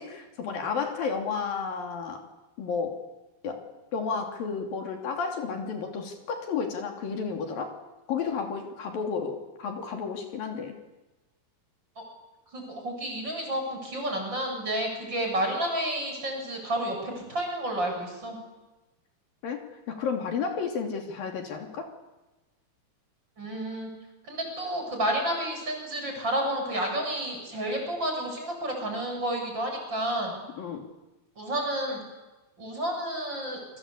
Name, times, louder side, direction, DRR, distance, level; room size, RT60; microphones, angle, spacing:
voice 1, 0.0-2.3 2.6-3.1 3.4-7.8 8.1-10.7 19.4-21.9 30.6-30.9, left 5 dB, 65° left, 4 dB, 4.6 m, -32 dB
voice 2, 12.5-18.4 23.4-23.9 24.3-30.4 31.4-32.0 32.6-33.6, right 1 dB, 25° right, 3 dB, 8.0 m, -30 dB
29.0 x 23.5 x 8.6 m, 1.1 s
omnidirectional pair, 4.4 m